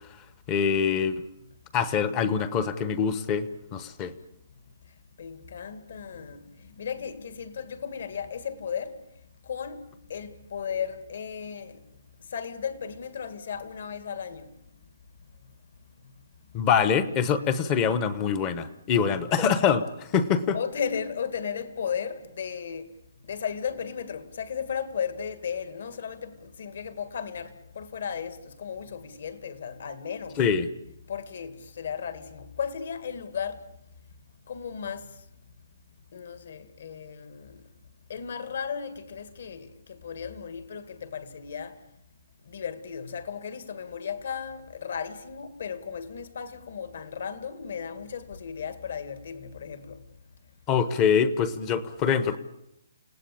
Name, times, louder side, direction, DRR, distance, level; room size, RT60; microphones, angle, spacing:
voice 1, 0.5-1.2 1.7-4.1 16.5-20.6 30.4-30.7 50.7-52.4, left 7 dB, 15° left, 1.0 m, -24 dB
voice 2, 5.2-9.0 9.4-11.8 12.2-14.6 15.4-15.5 16.6-16.7 20.5-22.9 23.2-30.4 31.1-33.6 34.5-35.3 36.1-37.6 38.1-41.8 42.4-50.0, left 7 dB, 50° left, 2.2 m, -35 dB
29.0 x 17.5 x 8.7 m
hypercardioid pair, 180°, 0 cm